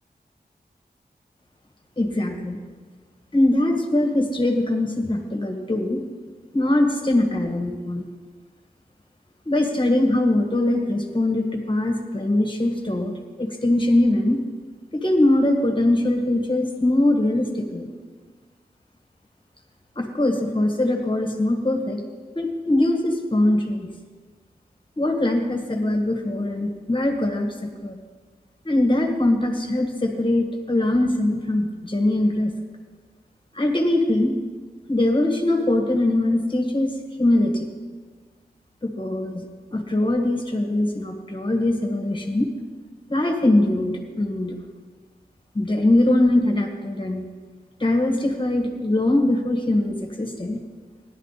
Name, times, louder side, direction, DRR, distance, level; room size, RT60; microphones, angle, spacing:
voice 1, 2.0-2.6 3.3-6.0 6.5-8.0 9.5-14.4 14.9-17.9 20.0-22.0 22.4-23.9 25.0-28.0 28.7-32.5 33.5-34.4 34.9-37.7 38.8-39.4 39.7-42.5 43.1-44.6 45.5-47.3 47.8-50.6, left 1 dB, 30° left, 3 dB, 1.7 m, -22 dB
17.5 x 11.5 x 4.2 m, 1.5 s
wide cardioid pair, 95°, 16 cm